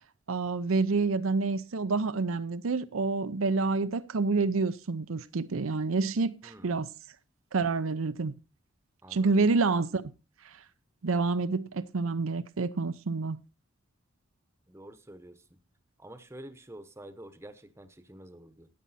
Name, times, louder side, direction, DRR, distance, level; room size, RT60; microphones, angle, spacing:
voice 1, 0.3-6.9 7.5-8.3 9.1-10.0 11.0-13.4, right 3 dB, 80° right, 0.6 m, -28 dB
voice 2, 6.4-6.8 9.0-9.5 14.7-15.4 16.0-18.7, right 1 dB, 15° right, 1.0 m, -48 dB
13.5 x 8.7 x 4.2 m
head